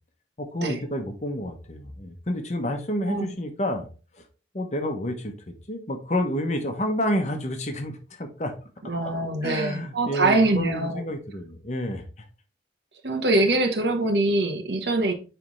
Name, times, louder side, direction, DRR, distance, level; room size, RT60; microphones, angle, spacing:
voice 1, 0.4-3.9 4.1-4.2 4.5-8.5 9.4-12.2, equal, 40° left, 5 dB, 0.9 m, -29 dB
voice 2, 8.8-11.0 13.0-15.1, right 2 dB, 70° right, 4 dB, 1.1 m, -23 dB
9.2 x 3.4 x 3.1 m, 0.36 s
head